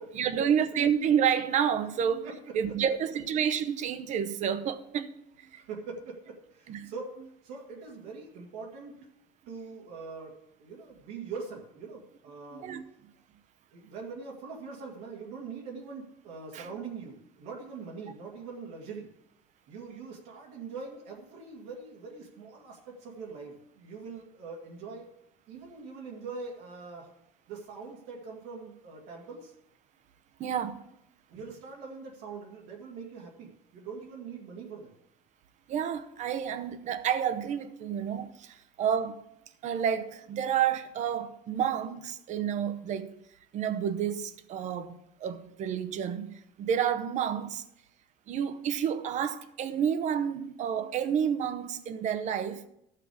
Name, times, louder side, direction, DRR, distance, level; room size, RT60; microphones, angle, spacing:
voice 1, 0.1-5.6 6.7-6.9 12.5-12.8 16.5-16.7 25.5-25.7 30.4-30.8 35.7-39.2 39.6-43.2 43.5-47.6 48.3-52.6, right 8 dB, 45° right, 0.7 m, -30 dB
voice 2, 2.2-2.7 5.6-7.2 7.4-9.0 9.5-12.7 13.7-19.1 19.7-25.1 25.5-27.1 27.5-29.5 31.3-34.9 38.5-38.6, right 4 dB, 85° right, 2.1 m, -43 dB
14.0 x 5.8 x 4.9 m
cardioid pair, 145°, 17 cm